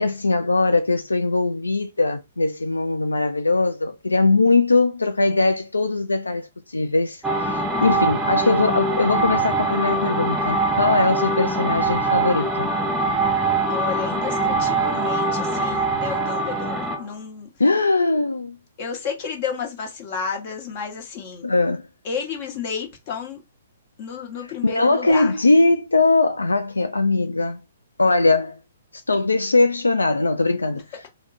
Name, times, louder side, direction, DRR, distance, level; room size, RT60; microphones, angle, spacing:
voice 1, 0.0-12.7 17.6-18.6 21.4-21.9 24.6-27.6 28.0-28.6 28.9-30.9, left 3 dB, 85° left, 0.3 m, -20 dB
sound 1, 7.2-17.1, right 3 dB, 5° right, 0.8 m, -23 dB
voice 2, 13.7-17.5 18.8-21.5 22.0-23.4 24.0-25.4, left 6 dB, 40° left, 1.2 m, -31 dB
3.4 x 2.2 x 4.0 m
figure-of-eight pair, 125°, 0 cm